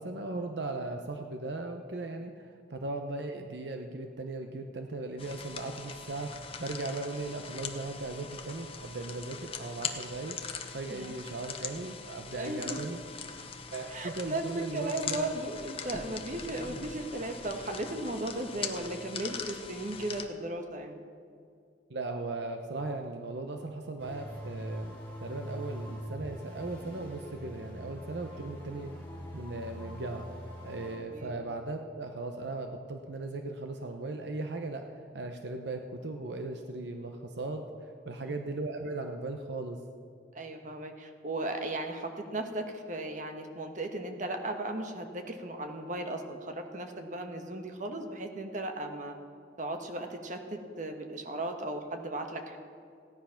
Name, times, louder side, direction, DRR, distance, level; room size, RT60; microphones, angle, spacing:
voice 1, 0.0-6.3 6.6-10.4 10.7-13.0 13.7-15.3 21.9-28.9 29.3-30.3 30.6-34.9 35.1-39.8, right 2 dB, 75° right, 5 dB, 0.8 m, -38 dB
sound 1, 5.2-20.3, left 5 dB, 30° left, 0.9 m, -41 dB
voice 2, 12.3-12.8 13.9-21.0 28.3-28.4 31.1-31.4 38.2-38.4 40.3-49.2 49.6-52.6, right 2 dB, 45° right, 5 dB, 1.2 m, -36 dB
sound 2, 24.0-31.0, equal, 10° left, 3.5 m, -43 dB
16.0 x 10.5 x 5.8 m, 2.3 s
head